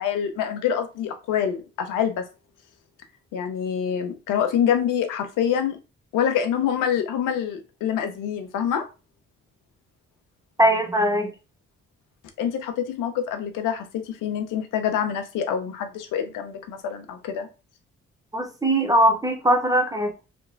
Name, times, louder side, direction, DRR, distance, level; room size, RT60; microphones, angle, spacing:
voice 1, 0.0-2.2 3.3-5.8 6.1-8.8 12.4-17.5, left 8 dB, 70° left, 0.7 m, -26 dB
voice 2, 10.6-11.3 18.3-20.3, right 1 dB, 10° right, 0.7 m, -21 dB
2.8 x 2.2 x 2.6 m
hypercardioid pair, 45°, 33 cm